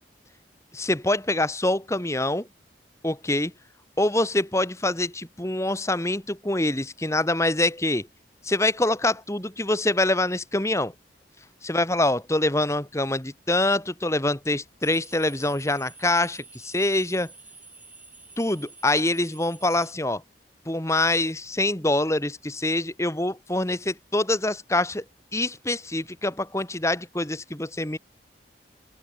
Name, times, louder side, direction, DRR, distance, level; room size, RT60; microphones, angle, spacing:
voice 1, 0.7-2.5 3.0-3.5 4.0-8.1 8.4-10.9 11.6-17.3 18.4-20.2 20.6-25.0 25.3-28.0, left 2 dB, 15° left, 1.8 m, -25 dB
sound 1, 14.8-19.9, right 3 dB, 10° right, 6.3 m, -49 dB
open air
head